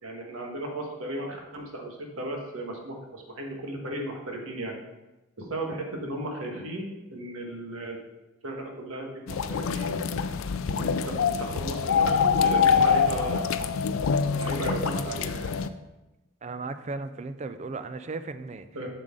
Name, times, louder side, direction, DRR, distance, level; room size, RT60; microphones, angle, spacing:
voice 1, 0.0-4.8 5.4-8.0 8.4-10.0 10.7-13.7 14.4-15.6 18.7-18.9, right 1 dB, 85° right, 1 dB, 1.5 m, -35 dB
sound 1, 9.3-15.7, left 6 dB, 70° left, 0.4 m, -25 dB
voice 2, 16.4-18.7, right 3 dB, 30° right, 11 dB, 0.4 m, -36 dB
7.5 x 6.6 x 3.7 m, 1.0 s
head